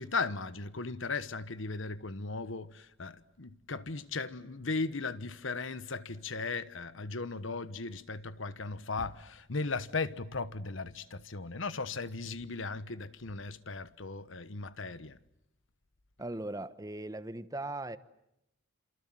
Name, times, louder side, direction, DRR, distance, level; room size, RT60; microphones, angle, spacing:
voice 1, 0.0-15.2, left 3 dB, 65° left, 1.2 m, -37 dB
voice 2, 16.2-18.0, right 2 dB, 15° right, 1.0 m, -38 dB
28.5 x 27.5 x 7.7 m
head